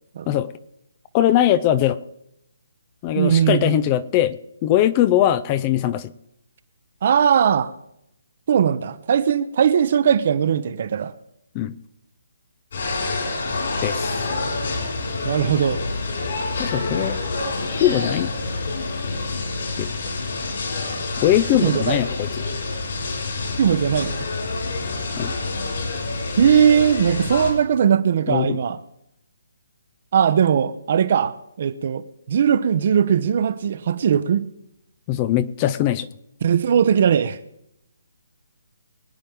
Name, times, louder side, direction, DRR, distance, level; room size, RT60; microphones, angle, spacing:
voice 1, 1.1-2.0 3.0-6.1 11.5-11.8 13.8-14.1 16.6-17.2 17.8-18.3 19.8-19.9 21.2-22.3 25.2-25.3 28.3-28.6 35.1-36.1, left 12 dB, 25° left, 0.6 m, -20 dB
voice 2, 3.1-3.7 7.0-7.7 8.5-11.1 15.2-15.8 21.6-22.0 23.6-24.2 26.4-28.8 30.1-34.4 36.4-37.4, right 8 dB, 50° right, 0.9 m, -19 dB
sound 1, 12.7-27.5, left 3 dB, 60° left, 4.7 m, -27 dB
24.0 x 9.0 x 3.6 m
figure-of-eight pair, 145°, 0 cm